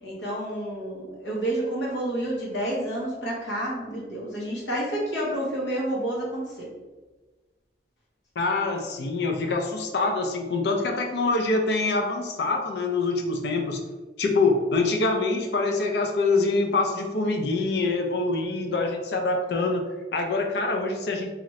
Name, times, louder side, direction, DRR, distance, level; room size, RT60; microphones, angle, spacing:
voice 1, 0.0-6.7, right 1 dB, 85° left, -4 dB, 1.1 m, -29 dB
voice 2, 8.4-13.8 14.2-21.3, left 3 dB, 65° left, 3 dB, 0.5 m, -25 dB
2.9 x 2.5 x 3.1 m, 1.2 s
head